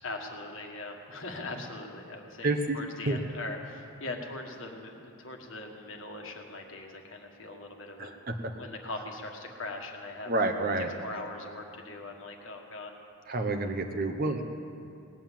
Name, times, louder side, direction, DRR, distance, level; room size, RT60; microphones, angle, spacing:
voice 1, 0.0-8.1 8.6-10.3 11.0-12.9, left 2 dB, 60° left, 2 dB, 1.6 m, -41 dB
voice 2, 2.4-2.8 3.1-3.2 8.0-8.3 10.3-11.2 13.3-14.4, right 2 dB, 40° right, 5 dB, 0.9 m, -29 dB
19.0 x 9.0 x 7.5 m, 2.6 s
head